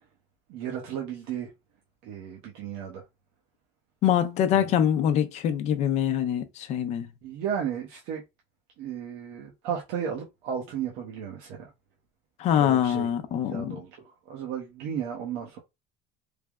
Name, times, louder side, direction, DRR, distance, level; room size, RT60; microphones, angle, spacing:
voice 1, 0.5-1.5 2.0-3.1 4.5-4.7 7.2-8.2 8.8-11.7 12.6-13.1 13.4-15.6, right 8 dB, 65° right, 0.8 m, -34 dB
voice 2, 4.0-7.1 12.4-13.8, left 9 dB, 40° left, 0.5 m, -24 dB
3.3 x 2.0 x 3.5 m
cardioid pair, 170°, 18 cm